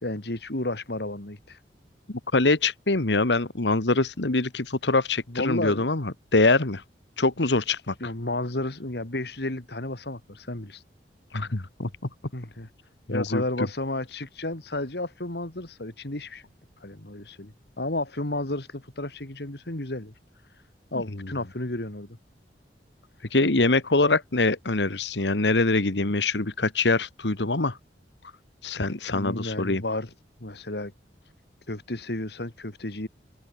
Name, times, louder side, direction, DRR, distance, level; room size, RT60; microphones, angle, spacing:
voice 1, 0.0-1.6 5.3-5.9 7.6-10.8 12.3-12.7 13.1-16.4 16.8-20.1 20.5-20.6 20.9-22.2 26.0-26.1 29.1-30.1 30.4-30.9 31.7-33.1, left 2 dB, 65° left, 2.6 m, -32 dB
voice 2, 2.1-6.8 7.2-7.9 11.3-11.9 13.1-13.4 23.3-27.8 28.6-29.8, left 3 dB, 85° left, 1.7 m, -24 dB
open air
head